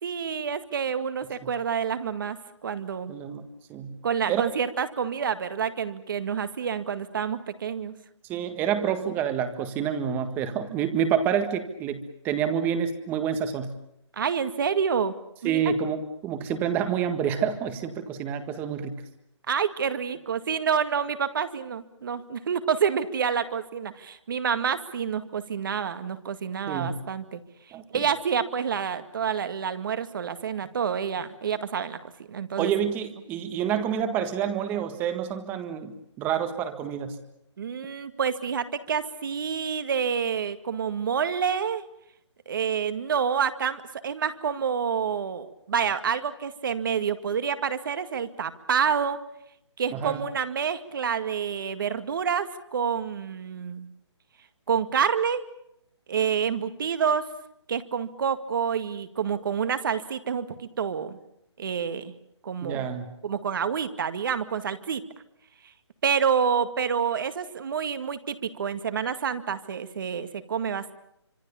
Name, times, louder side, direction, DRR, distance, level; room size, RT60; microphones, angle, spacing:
voice 1, 0.0-2.4 2.6-3.1 4.0-7.9 14.1-15.1 15.4-15.6 19.5-27.4 27.9-32.0 32.3-32.7 37.6-41.8 42.5-49.2 49.8-53.9 54.7-55.4 56.1-57.2 57.7-61.2 61.6-62.1 62.4-62.9 63.2-65.0 66.0-70.9, right 7 dB, 45° right, 10 dB, 2.1 m, -28 dB
voice 2, 3.1-3.4 3.7-4.0 4.3-4.4 8.3-13.7 15.4-19.0 26.7-27.0 27.7-28.0 32.6-37.2 49.9-50.2 62.6-63.1, right 8 dB, 10° right, 9 dB, 1.7 m, -28 dB
26.0 x 26.0 x 7.1 m, 0.77 s
hypercardioid pair, 165°, 15 cm